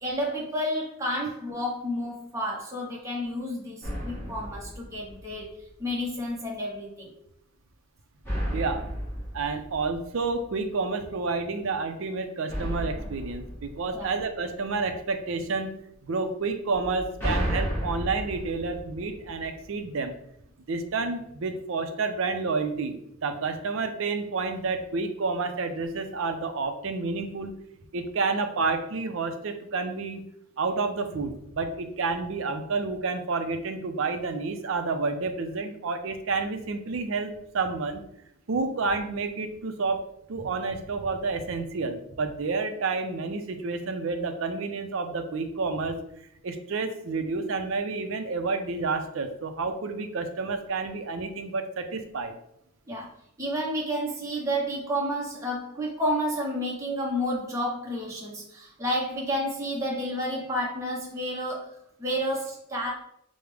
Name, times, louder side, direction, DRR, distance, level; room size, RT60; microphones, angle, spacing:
voice 1, 0.0-7.1 13.9-14.1 52.9-53.1 53.4-62.9, equal, 15° right, -4 dB, 0.6 m, -30 dB
sound 1, 3.8-5.7 8.2-10.7 12.5-14.7 16.7-19.8, equal, 10° left, 1.3 m, -33 dB
voice 2, 8.5-8.8 9.3-15.7 16.0-20.1 20.7-27.6 27.9-30.2 30.6-38.0 38.5-40.0 40.3-46.0 46.4-52.3, right 4 dB, 65° right, 7 dB, 0.4 m, -30 dB
4.8 x 2.1 x 3.3 m, 0.76 s
head